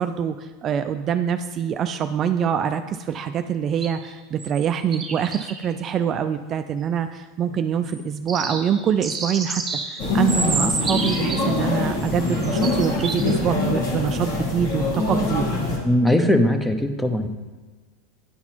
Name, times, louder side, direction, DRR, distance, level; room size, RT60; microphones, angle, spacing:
voice 1, 0.0-15.5, right 8 dB, 40° right, 8 dB, 0.4 m, -25 dB
sound 1, 3.8-4.7 4.9-5.7 7.8-8.0 8.3-11.7 12.0-13.5 13.9-14.0, right 4 dB, 20° right, 1.2 m, -30 dB
sound 2, 10.0-15.8, left 2 dB, 70° left, 2.1 m, -24 dB
voice 2, 15.8-17.3, left 1 dB, 5° left, 7 dB, 0.8 m, -19 dB
9.6 x 4.0 x 4.5 m, 1.3 s
hypercardioid pair, 105°, 0 cm